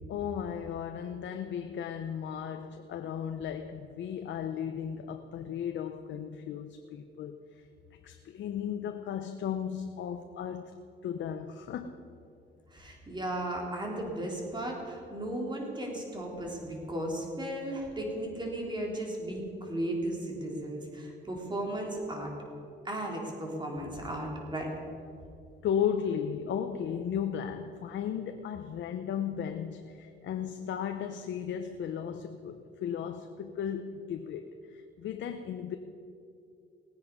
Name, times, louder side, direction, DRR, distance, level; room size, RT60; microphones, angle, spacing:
voice 1, 0.1-7.7 8.0-12.0 25.6-35.8, left 8 dB, 70° left, 7 dB, 0.7 m, -35 dB
voice 2, 12.7-22.3 22.8-24.7, right 1 dB, 20° right, -1 dB, 3.5 m, -35 dB
18.5 x 9.5 x 5.3 m, 2.5 s
cardioid pair, 90°, 20 cm